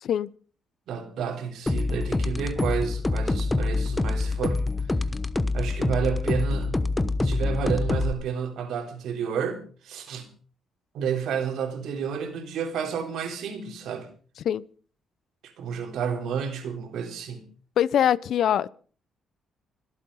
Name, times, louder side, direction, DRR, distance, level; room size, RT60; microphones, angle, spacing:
voice 1, 0.9-4.7 5.5-6.9 7.2-10.3 10.9-14.1 15.4-17.5, right 7 dB, 75° right, 3.7 m, -30 dB
sound 1, 1.7-8.1, left 3 dB, 15° left, 1.0 m, -26 dB
voice 2, 17.8-18.7, left 10 dB, 70° left, 0.7 m, -23 dB
25.5 x 8.6 x 5.6 m
cardioid pair, 90°, 0 cm